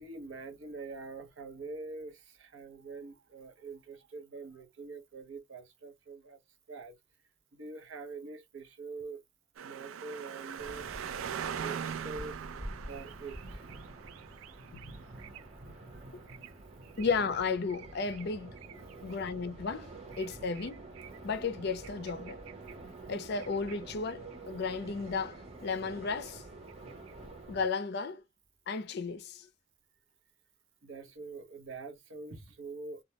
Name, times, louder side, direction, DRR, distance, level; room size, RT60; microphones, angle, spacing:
voice 1, 0.0-6.4 6.7-7.0 7.5-9.2 9.6-10.9 11.6-12.4 12.9-13.7 15.9-16.0 18.8-19.1 30.8-33.0, right 3 dB, 75° right, 0.7 m, -44 dB
sound 1, 9.6-17.4 17.7-19.5 19.9-22.7 23.0-23.1 23.4-24.4 24.6-25.2 25.5-27.2, right 8 dB, 90° right, 0.3 m, -43 dB
sound 2, 10.6-27.7, right 2 dB, 30° right, 0.7 m, -48 dB
voice 2, 17.0-18.5 19.0-19.9 20.2-20.9 21.2-22.4 23.1-26.4 27.5-28.2 28.7-29.5, left 4 dB, 55° left, 0.4 m, -34 dB
2.3 x 2.1 x 2.7 m
head